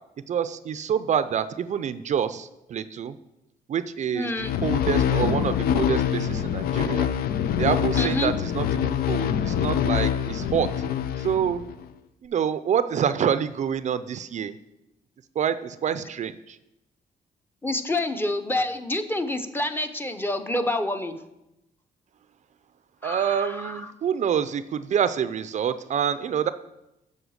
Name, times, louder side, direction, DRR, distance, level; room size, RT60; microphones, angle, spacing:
voice 1, 0.3-3.2 3.7-7.1 7.6-10.7 11.2-11.6 12.2-14.6 15.4-16.6 23.0-26.5, right 8 dB, 50° right, 12 dB, 0.4 m, -27 dB
voice 2, 4.1-4.5 8.0-8.3 17.6-21.2 23.0-23.8, left 2 dB, 15° left, 8 dB, 0.7 m, -28 dB
sound 1, 4.4-11.8, left 9 dB, 80° left, 0.5 m, -25 dB
8.0 x 5.5 x 6.3 m, 0.90 s
cardioid pair, 100°, 15 cm